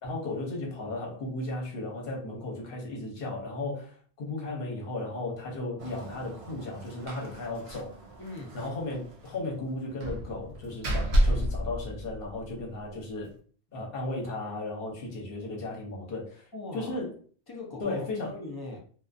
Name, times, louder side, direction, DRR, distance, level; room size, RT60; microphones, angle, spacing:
voice 1, 0.0-8.0 8.5-13.3 13.7-16.5 16.7-17.1 17.8-18.3, left 2 dB, 60° left, -1 dB, 1.0 m, -35 dB
Engine, 5.8-10.3, right 2 dB, 55° right, 0.4 m, -49 dB
Slam, 7.1-7.4 7.7-7.8 8.1-8.2 10.0-12.6, equal, 75° right, 0.8 m, -28 dB
voice 2, 8.2-8.6 12.9-13.0 16.5-17.0 17.5-18.8, left 2 dB, 35° left, -1 dB, 0.4 m, -40 dB
2.4 x 2.3 x 2.4 m, 0.43 s
omnidirectional pair, 1.1 m